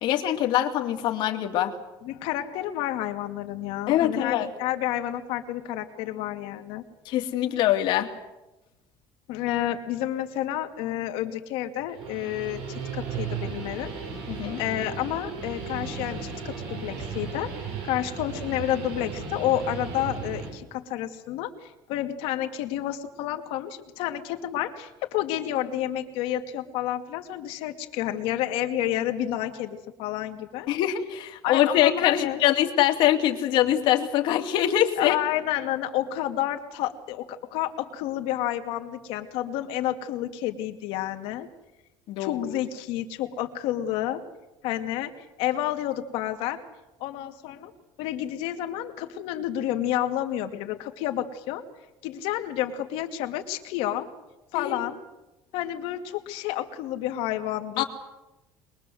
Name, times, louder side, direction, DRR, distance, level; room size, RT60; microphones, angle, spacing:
voice 1, 0.0-1.7 3.9-4.5 7.1-8.1 14.3-14.6 30.7-35.2 42.1-42.5 54.5-54.8 57.8-57.9, left 12 dB, 50° left, 4 dB, 2.4 m, -23 dB
voice 2, 2.0-6.8 9.3-13.9 14.6-30.7 31.4-32.4 35.0-41.5 42.2-44.2 44.6-46.6 47.0-47.7 48.0-51.6 52.0-54.1 54.5-55.0 55.5-57.8, left 12 dB, 70° left, 6 dB, 2.4 m, -30 dB
Guitar, 11.8-20.5, right 5 dB, 65° right, 7.2 m, -35 dB
23.0 x 22.0 x 7.8 m, 1.0 s
cardioid pair, 175°, 10 cm